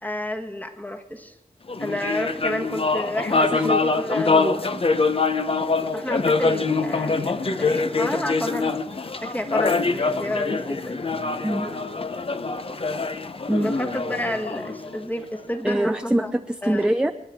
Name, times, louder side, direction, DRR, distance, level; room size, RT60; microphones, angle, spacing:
voice 1, 0.0-1.3 1.8-4.4 5.9-8.8 9.2-10.9 13.6-16.3 16.6-16.9, left 1 dB, 10° left, 4 dB, 1.4 m, -30 dB
sound 1, 1.7-15.4, left 4 dB, 40° left, 0.7 m, -24 dB
voice 2, 3.5-3.8 4.3-4.8 11.4-11.8 13.5-13.7 15.6-17.1, right 1 dB, 5° right, 8 dB, 0.5 m, -24 dB
28.5 x 9.9 x 3.5 m, 0.98 s
wide cardioid pair, 75°, 15 cm